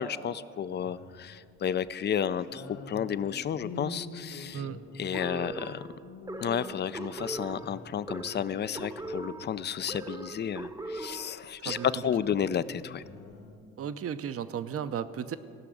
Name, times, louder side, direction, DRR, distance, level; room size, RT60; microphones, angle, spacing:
voice 1, 0.0-4.6 5.0-5.9 6.4-13.0, left 8 dB, 35° left, 16 dB, 0.4 m, -32 dB
sound 1, 0.7-1.4 1.8-2.0 2.4-9.9 10.6-10.7 11.0-11.1 11.3-13.6, left 2 dB, 60° left, 1.8 m, -46 dB
sound 2, 5.1-12.2, right 2 dB, 10° right, 0.8 m, -40 dB
voice 2, 13.8-15.4, right 8 dB, 50° right, 13 dB, 0.6 m, -34 dB
17.0 x 6.0 x 7.8 m, 2.3 s
cardioid pair, 90°, 30 cm